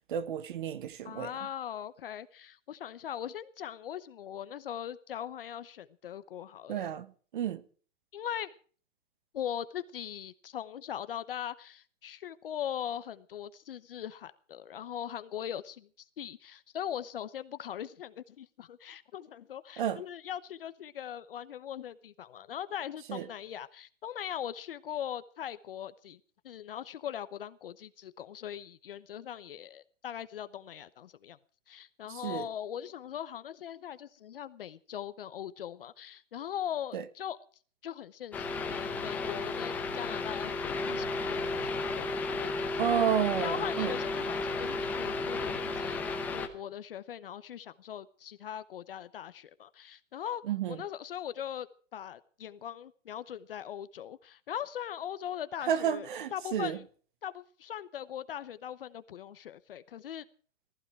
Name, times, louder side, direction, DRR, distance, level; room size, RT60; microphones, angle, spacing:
voice 1, 0.1-1.3 6.7-7.1 7.3-7.6 19.8-20.0 23.1-23.2 32.2-32.5 36.9-37.0 42.8-43.9 50.5-50.8 55.7-56.8, right 9 dB, 40° right, 1.4 m, -31 dB
voice 2, 1.0-6.9 8.1-8.6 9.3-15.9 16.2-26.2 26.4-31.4 31.7-37.4 37.8-43.1 43.4-50.4 50.7-51.7 51.9-56.9 57.2-60.2, left 10 dB, 50° left, 1.0 m, -40 dB
sound 1, 38.3-46.5, left 3 dB, 5° left, 0.9 m, -33 dB
19.0 x 15.0 x 4.6 m
hypercardioid pair, 175°, 37 cm